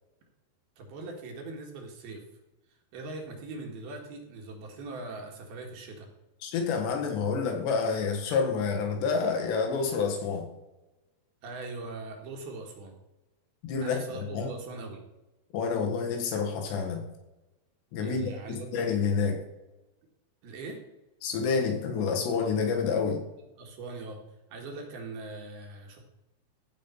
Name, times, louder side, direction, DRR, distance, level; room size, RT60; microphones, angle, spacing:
voice 1, 0.8-2.2 2.9-6.1 11.4-13.0 13.8-15.0 18.0-18.7 20.4-20.8 23.6-24.2 24.5-26.0, right 3 dB, 70° right, 2 dB, 3.4 m, -41 dB
voice 2, 6.4-10.4 13.6-14.0 14.3-14.5 15.5-17.0 17.9-19.4 21.2-23.2, left 5 dB, 80° left, 2 dB, 3.9 m, -28 dB
15.0 x 5.5 x 5.6 m, 1.0 s
omnidirectional pair, 4.9 m